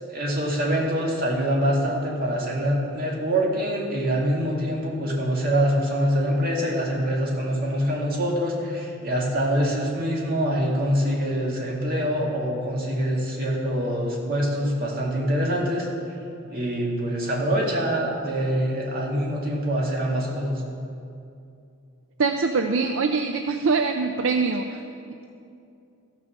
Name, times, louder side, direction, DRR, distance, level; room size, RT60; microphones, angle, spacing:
voice 1, 0.0-15.9 16.5-20.6, equal, 45° right, -3 dB, 2.1 m, -25 dB
voice 2, 22.2-24.8, right 4 dB, 65° right, 6 dB, 0.5 m, -23 dB
15.0 x 6.2 x 6.5 m, 2.5 s
head